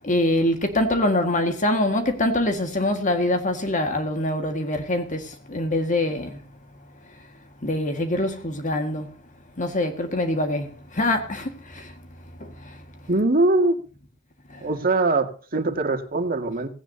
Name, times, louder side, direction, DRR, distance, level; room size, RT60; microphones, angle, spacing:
voice 1, 0.0-5.2 5.5-6.4 7.6-9.1 9.6-10.7 10.9-11.5 11.7-11.8, left 1 dB, 35° left, 1.8 m, -24 dB
voice 2, 13.1-13.8 14.6-16.7, right 2 dB, 40° right, 2.0 m, -22 dB
18.0 x 16.5 x 2.8 m
head